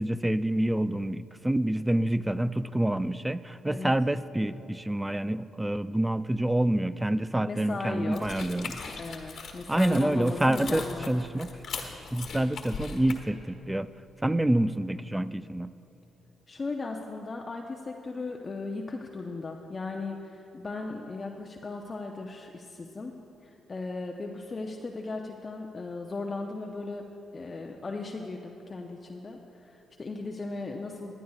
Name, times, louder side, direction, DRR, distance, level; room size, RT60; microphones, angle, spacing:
voice 1, 0.0-8.8 9.7-11.5 11.8-13.9 14.2-15.7, right 1 dB, 10° right, 15 dB, 0.4 m, -27 dB
voice 2, 7.4-8.2 9.0-11.1 16.5-23.1 23.7-27.1 27.3-29.4 29.7-31.1, left 3 dB, 40° left, 1 dB, 0.7 m, -37 dB
sound 1, 8.1-13.1, left 5 dB, 60° left, 1.4 m, -40 dB
20.5 x 10.0 x 2.4 m, 3.0 s
hypercardioid pair, 45°, 0 cm